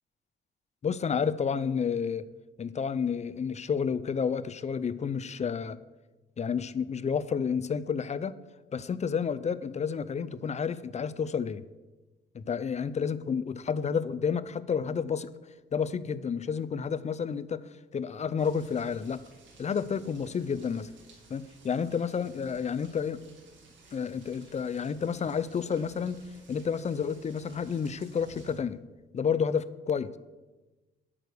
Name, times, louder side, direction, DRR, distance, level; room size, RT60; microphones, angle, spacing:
voice 1, 0.8-2.3 2.6-5.8 6.4-8.3 8.7-11.6 12.3-15.3 15.7-17.6 17.9-19.2 19.6-20.9 21.3-23.2 23.9-26.2 26.5-28.8 29.1-30.1, left 6 dB, 35° left, 15 dB, 0.5 m, -30 dB
sound 1, 18.4-28.6, right 3 dB, 70° right, 2.3 m, -56 dB
8.6 x 6.5 x 6.8 m, 1.2 s
cardioid pair, 90°, 20 cm